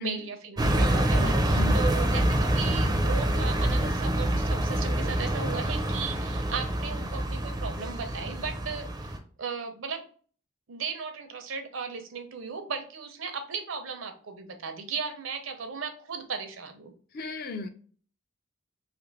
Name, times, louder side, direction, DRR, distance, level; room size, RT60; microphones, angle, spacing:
voice 1, 0.0-10.1 10.7-16.9, right 5 dB, 75° right, 6 dB, 0.6 m, -36 dB
sound 1, 0.6-9.2, right 1 dB, 20° right, 0.4 m, -26 dB
voice 2, 1.2-1.8 17.1-17.7, left 4 dB, 45° left, 7 dB, 0.4 m, -36 dB
2.8 x 2.5 x 3.1 m, 0.43 s
head